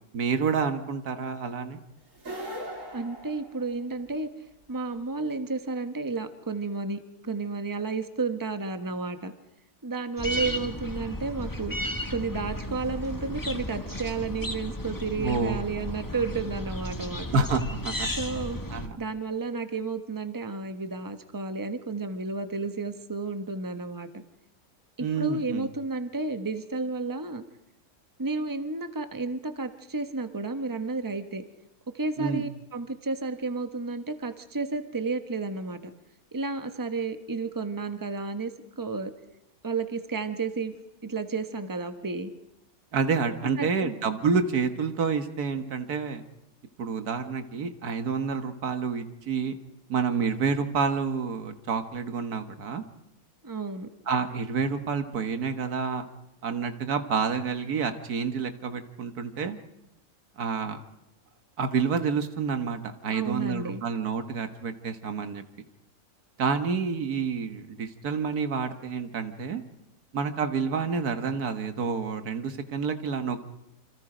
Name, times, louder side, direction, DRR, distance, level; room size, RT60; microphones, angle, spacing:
voice 1, 0.1-1.8 15.2-15.6 15.9-16.0 17.3-18.1 18.7-19.0 25.0-25.7 32.2-32.4 42.9-46.2 46.8-49.6 49.9-52.8 54.1-56.1 56.4-59.6 60.4-60.8 61.6-65.4 66.4-69.6 70.1-73.4, right 5 dB, 85° right, 8 dB, 1.9 m, -28 dB
sound 1, 2.1-4.2, right 1 dB, 55° right, 3.9 m, -39 dB
voice 2, 2.9-4.3 4.7-9.3 9.8-11.7 12.1-17.3 18.2-18.6 19.0-24.2 25.0-27.4 28.2-31.4 31.9-35.9 36.3-39.1 39.6-40.7 41.0-42.3 43.6-43.9 53.4-53.9 63.1-63.8, right 3 dB, 15° right, 8 dB, 1.2 m, -32 dB
sound 2, 10.2-18.9, left 1 dB, 15° left, 1.4 m, -34 dB
28.0 x 25.5 x 5.1 m, 0.87 s
omnidirectional pair, 1.6 m